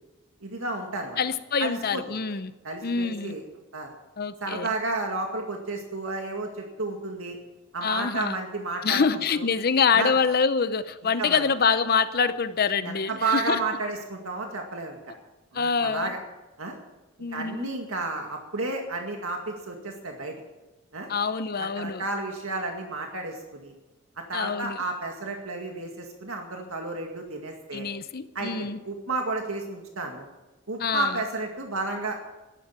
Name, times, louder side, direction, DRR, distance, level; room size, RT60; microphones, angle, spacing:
voice 1, 0.4-1.2 1.6-2.0 2.6-3.4 3.7-3.9 4.4-7.4 7.7-9.5 9.9-10.1 11.2-11.5 12.8-15.0 15.5-16.2 16.6-16.7 17.3-20.4 20.9-21.1 21.6-23.7 24.3-27.9 28.3-30.3 30.7-32.2, right 3 dB, 75° right, 2 dB, 2.1 m, -32 dB
voice 2, 1.2-2.5 2.8-3.3 4.2-4.7 7.8-8.4 8.8-13.6 15.5-16.1 17.2-17.7 21.1-22.0 24.3-24.8 27.7-28.8 30.8-31.2, left 5 dB, 45° left, 12 dB, 0.7 m, -25 dB
13.0 x 11.0 x 8.8 m, 1.1 s
head